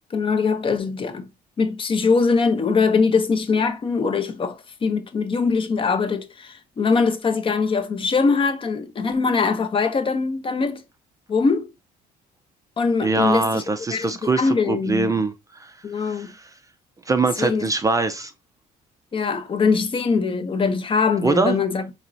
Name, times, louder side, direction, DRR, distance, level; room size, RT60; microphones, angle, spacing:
voice 1, 0.1-1.3 1.6-10.8 11.3-11.7 12.8-13.6 13.9-15.1 15.8-16.3 17.4-17.7 19.1-21.9, left 4 dB, 30° left, 0.6 m, -22 dB
voice 2, 13.0-16.5 17.1-18.3 21.2-21.6, right 3 dB, 20° right, 0.4 m, -23 dB
4.2 x 3.0 x 2.6 m
cardioid pair, 110°, 17 cm